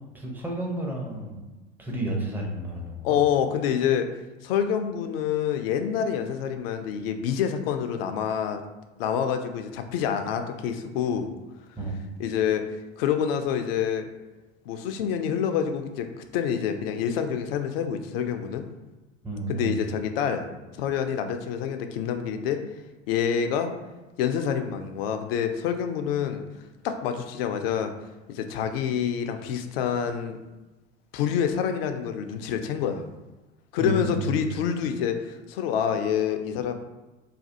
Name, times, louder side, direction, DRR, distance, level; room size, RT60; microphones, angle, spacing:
voice 1, 0.1-1.4 1.8-3.2 11.7-11.9 19.2-19.8 33.8-34.3, right 1 dB, 5° right, -1 dB, 0.5 m, -31 dB
voice 2, 3.0-4.1 4.4-8.6 9.0-11.3 12.2-12.7 13.0-14.1 14.7-18.7 19.5-20.5 20.8-22.6 23.1-23.7 24.2-26.4 26.8-27.9 28.3-30.4 31.1-33.0 33.7-36.7, left 8 dB, 50° left, 7 dB, 0.4 m, -27 dB
3.2 x 2.2 x 2.7 m, 1.1 s
figure-of-eight pair, 75°, 38 cm